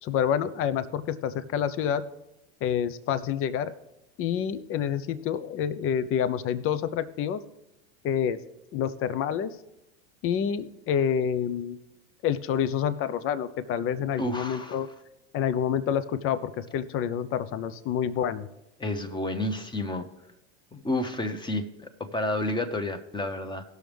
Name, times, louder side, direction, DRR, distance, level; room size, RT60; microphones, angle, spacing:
voice 1, 0.0-2.0 2.6-3.7 4.2-7.4 8.0-8.4 8.7-9.5 10.2-11.8 12.2-14.9 15.3-18.5, left 8 dB, 45° left, 14 dB, 0.7 m, -28 dB
voice 2, 14.2-14.8 18.8-20.1 20.7-23.6, left 1 dB, 15° left, 6 dB, 1.1 m, -30 dB
17.5 x 6.3 x 3.5 m, 0.93 s
supercardioid pair, 105°, 31 cm